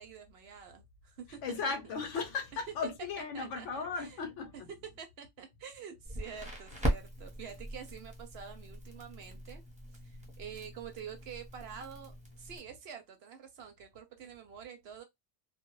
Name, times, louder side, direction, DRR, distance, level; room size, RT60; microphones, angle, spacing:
voice 1, 0.0-1.9 3.3-4.1 5.0-9.6 10.0-15.0, right 7 dB, 65° right, 0.7 m, -48 dB
voice 2, 1.4-4.7, left 5 dB, 80° left, 1.0 m, -36 dB
Crackle, 6.0-12.6, equal, 5° right, 0.7 m, -39 dB
2.3 x 2.0 x 2.9 m
omnidirectional pair, 1.3 m